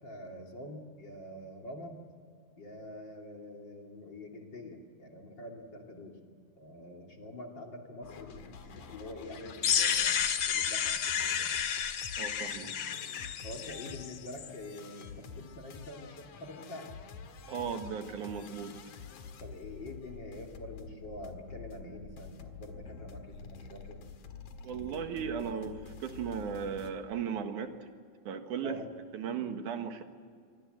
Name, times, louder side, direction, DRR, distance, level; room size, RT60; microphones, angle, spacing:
voice 1, 0.0-2.0 2.6-6.2 6.6-8.6 8.9-11.6 13.4-16.9 19.4-24.0 28.6-28.9, left 1 dB, 35° left, 1 dB, 3.3 m, -46 dB
sound 1, 8.0-26.9, left 5 dB, 90° left, 3.3 m, -49 dB
sound 2, 9.6-14.5, left 8 dB, 55° left, 1.3 m, -31 dB
voice 2, 12.2-12.8 17.5-18.8 24.6-27.8 28.3-28.8 29.1-30.0, right 7 dB, 80° right, 7 dB, 3.0 m, -36 dB
26.5 x 24.0 x 8.0 m, 2.1 s
omnidirectional pair, 3.5 m